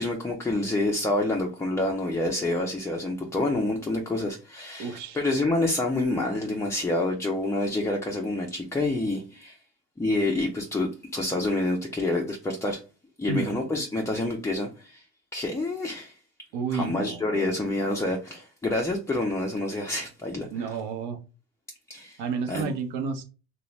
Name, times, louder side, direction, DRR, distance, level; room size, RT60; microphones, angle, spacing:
voice 1, 0.0-9.6 10.0-12.8 13.2-15.0 15.3-16.2 16.7-20.5 21.9-22.2 22.5-22.7, left 2 dB, 5° left, 0.4 m, -27 dB
voice 2, 4.8-5.2 13.3-13.5 16.5-17.5 20.5-21.2 22.2-23.2, right 5 dB, 65° right, 0.9 m, -31 dB
2.6 x 2.2 x 3.1 m
hypercardioid pair, 80°, 48 cm